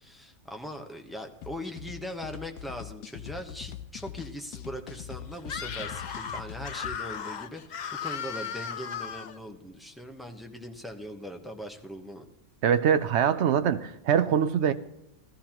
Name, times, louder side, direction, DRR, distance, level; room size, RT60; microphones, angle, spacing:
voice 1, 0.0-12.3, equal, ahead, 4 dB, 0.7 m, -40 dB
sound 1, 1.4-7.0, left 11 dB, 85° left, 1.1 m, -42 dB
Screaming, 5.4-9.4, left 7 dB, 55° left, 0.5 m, -36 dB
voice 2, 12.6-14.7, right 8 dB, 65° right, 11 dB, 0.7 m, -23 dB
15.0 x 14.0 x 2.9 m, 0.90 s
omnidirectional pair, 1.5 m